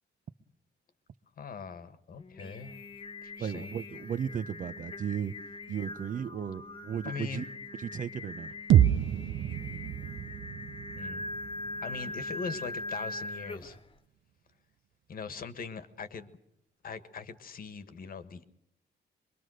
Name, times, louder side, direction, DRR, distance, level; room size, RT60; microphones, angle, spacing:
voice 1, 1.4-2.8 3.2-3.7 7.0-7.4 10.9-11.2 11.8-13.8 15.1-16.3 16.8-18.4, left 5 dB, 50° left, 1.6 m, -41 dB
Singing, 2.2-13.9, left 2 dB, 25° left, 1.3 m, -42 dB
voice 2, 3.4-5.3 5.7-7.5 7.8-8.6, right 8 dB, 45° right, 0.9 m, -35 dB
sound 1, 8.7-12.7, right 11 dB, 90° right, 0.9 m, -28 dB
25.0 x 23.0 x 6.4 m
wide cardioid pair, 160°, 19 cm